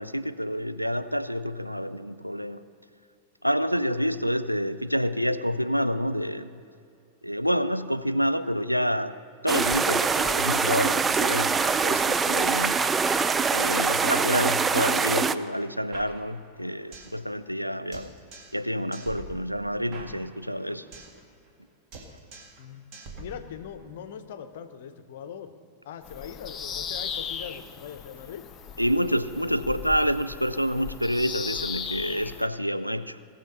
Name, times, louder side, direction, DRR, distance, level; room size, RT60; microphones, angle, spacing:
voice 1, 0.0-2.6 3.4-6.6 7.2-9.2 9.4-11.5 11.8-12.9 13.5-18.1 18.5-20.9 28.8-33.2, equal, 90° right, 11 dB, 0.4 m, -28 dB
sound 1, 9.5-15.3, right 5 dB, 15° right, 0.4 m, -24 dB
sound 2, 15.9-17.2 17.5-17.6 17.9-18.6 18.9-21.2 21.4-21.7 21.9-22.6 22.9-23.9, right 3 dB, 40° right, 1.9 m, -45 dB
voice 2, 22.6-25.5 25.8-28.5, left 8 dB, 55° left, 10 dB, 0.8 m, -41 dB
Bird vocalization bird call bird song, 26.0-32.4, left 7 dB, 25° left, 0.6 m, -37 dB
18.5 x 6.9 x 5.4 m, 2.5 s
figure-of-eight pair, 90°, 0 cm